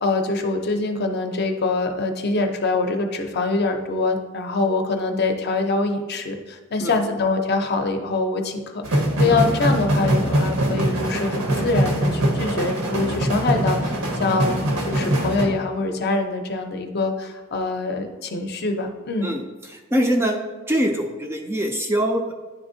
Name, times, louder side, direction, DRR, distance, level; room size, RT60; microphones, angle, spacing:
voice 1, 0.0-19.3, left 3 dB, 45° left, 4 dB, 0.6 m, -24 dB
sound 1, 8.8-15.5, right 1 dB, 90° right, 1.0 m, -22 dB
voice 2, 19.2-20.4 20.7-22.3, equal, 10° right, 2 dB, 0.3 m, -23 dB
10.0 x 3.5 x 2.7 m, 1.3 s
head